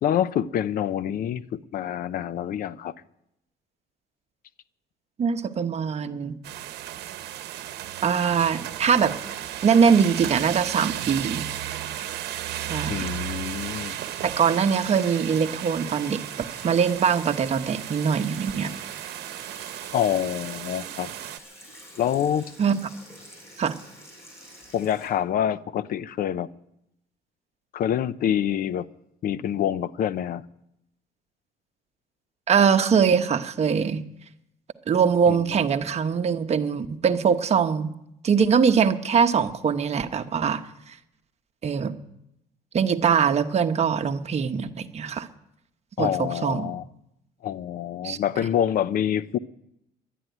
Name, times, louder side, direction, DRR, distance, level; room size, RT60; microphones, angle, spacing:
voice 1, 0.0-2.9 12.9-14.0 19.9-21.1 22.0-22.5 24.7-26.5 27.7-28.9 29.2-30.4 35.3-35.4 46.0-46.8 47.4-49.4, left 10 dB, 60° left, 0.7 m, -26 dB
voice 2, 5.2-6.4 8.0-9.1 9.6-11.5 12.6-13.1 14.2-16.2 16.6-18.7 22.6-22.8 23.6-23.8 32.5-34.0 34.9-37.9 38.2-40.6 40.9-41.0 41.6-41.9 42.7-45.3 46.0-46.7 48.0-48.2, right 6 dB, 40° right, 1.1 m, -22 dB
sound 1, 6.4-21.4, right 12 dB, 75° right, 1.0 m, -35 dB
Sink (filling or washing), 8.4-25.1, equal, 15° left, 7.4 m, -48 dB
11.0 x 11.0 x 9.2 m
cardioid pair, 110°, 17 cm